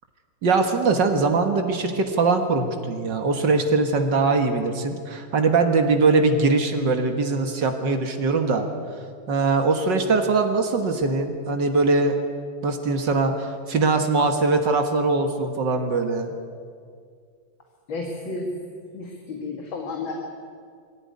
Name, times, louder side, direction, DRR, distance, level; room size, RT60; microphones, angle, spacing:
voice 1, 0.4-8.7 9.3-12.1 12.6-16.3, right 3 dB, 65° right, 5 dB, 2.2 m, -21 dB
voice 2, 17.9-18.5 18.9-20.1, left 3 dB, 85° left, 1 dB, 2.8 m, -31 dB
21.0 x 16.0 x 9.6 m, 2.2 s
omnidirectional pair, 2.1 m